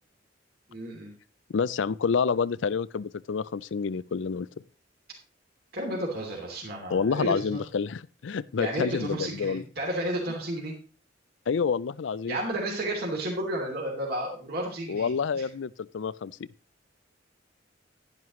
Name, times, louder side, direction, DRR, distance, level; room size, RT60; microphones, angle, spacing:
voice 1, 0.7-1.1 5.7-7.6 8.6-10.7 12.3-15.4, right 1 dB, 55° right, 3.0 m, -32 dB
voice 2, 1.5-4.5 6.9-9.6 11.5-12.4 14.9-16.3, left 5 dB, 80° left, 0.4 m, -28 dB
11.0 x 10.5 x 3.1 m
head